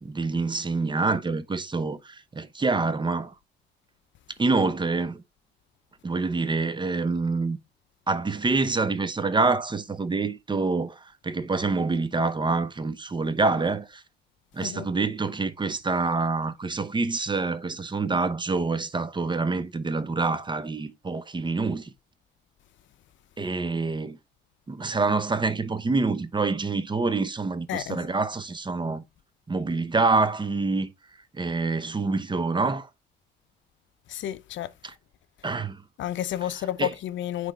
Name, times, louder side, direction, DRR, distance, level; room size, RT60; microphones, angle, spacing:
voice 1, 0.0-3.3 4.4-5.2 6.0-7.6 8.1-14.0 14.5-21.9 23.4-24.2 24.7-29.0 29.5-30.9 31.3-32.9 35.4-35.8 36.8-36.9, right 3 dB, 25° right, 0.8 m, -26 dB
voice 2, 27.7-28.1 34.1-34.7 36.0-37.5, left 11 dB, 70° left, 0.6 m, -31 dB
8.9 x 3.4 x 3.4 m
cardioid pair, 90°, 20 cm